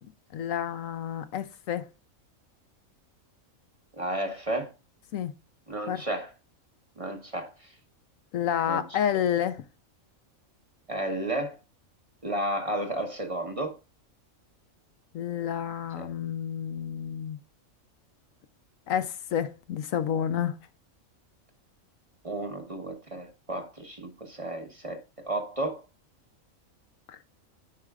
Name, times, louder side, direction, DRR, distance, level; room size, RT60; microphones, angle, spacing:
voice 1, 0.3-1.9 5.1-5.3 5.9-6.0 8.3-9.6 15.1-17.4 18.9-20.6 27.1-27.2, left 9 dB, 75° left, 1.1 m, -29 dB
voice 2, 4.0-4.7 5.7-6.3 7.0-7.7 8.7-8.8 10.9-11.6 12.2-13.8 16.0-16.1 22.2-25.8, right 1 dB, 25° right, 1.1 m, -32 dB
9.6 x 4.7 x 2.3 m
omnidirectional pair, 1.4 m